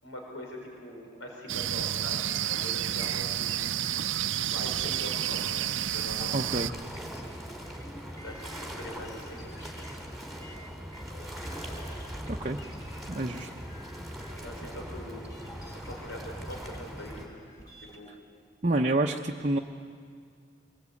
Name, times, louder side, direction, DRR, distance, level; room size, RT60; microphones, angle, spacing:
voice 1, 0.0-3.5 4.5-5.6 5.9-6.3 8.2-9.6 14.4-15.3 15.7-17.2 17.9-18.1, equal, 85° left, -1 dB, 5.1 m, -42 dB
sound 1, 1.5-6.7, right 11 dB, 75° right, 0.6 m, -30 dB
sound 2, 3.5-18.0, left 1 dB, 20° left, 2.5 m, -51 dB
voice 2, 6.3-6.7 12.3-12.6 13.1-13.5 18.1-18.2 18.6-19.6, right 2 dB, 35° right, 1 dB, 0.8 m, -28 dB
sound 3, 6.4-17.3, equal, ahead, 3.2 m, -41 dB
25.0 x 21.0 x 8.4 m, 2.2 s
head